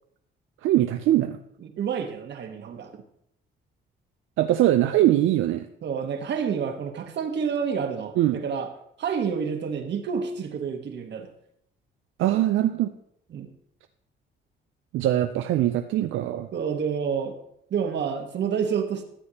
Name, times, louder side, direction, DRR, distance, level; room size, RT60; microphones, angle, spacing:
voice 1, 0.6-1.4 4.4-5.7 8.2-8.4 12.2-12.9 14.9-16.5, right 13 dB, 80° right, 8 dB, 0.5 m, -22 dB
voice 2, 1.6-3.0 5.8-8.7 9.0-11.3 13.3-13.5 16.5-17.3 17.7-19.0, right 6 dB, 60° right, 5 dB, 1.3 m, -29 dB
13.0 x 7.7 x 2.9 m, 0.74 s
cardioid pair, 90°, 20 cm